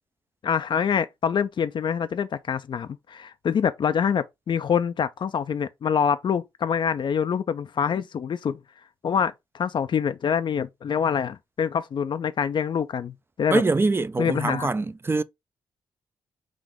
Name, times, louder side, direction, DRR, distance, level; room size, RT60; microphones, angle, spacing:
voice 1, 0.4-8.6 9.0-13.6 14.2-14.7, left 7 dB, 55° left, 0.4 m, -25 dB
voice 2, 13.5-15.2, right 3 dB, 25° right, 0.3 m, -24 dB
3.6 x 2.5 x 3.5 m
supercardioid pair, 50°, 10 cm